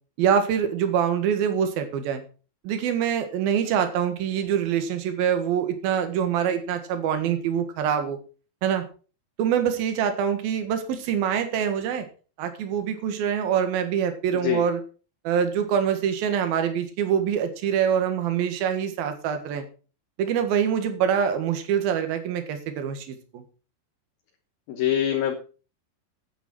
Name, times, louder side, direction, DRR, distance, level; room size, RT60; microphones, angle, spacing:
voice 1, 0.2-2.2 2.6-8.2 8.6-8.8 9.4-12.1 12.4-14.8 15.2-19.6 20.2-23.4, right 8 dB, 65° right, 7 dB, 3.4 m, -25 dB
voice 2, 24.7-25.4, left 10 dB, 70° left, 4 dB, 3.0 m, -23 dB
9.6 x 9.3 x 6.0 m, 0.37 s
omnidirectional pair, 4.7 m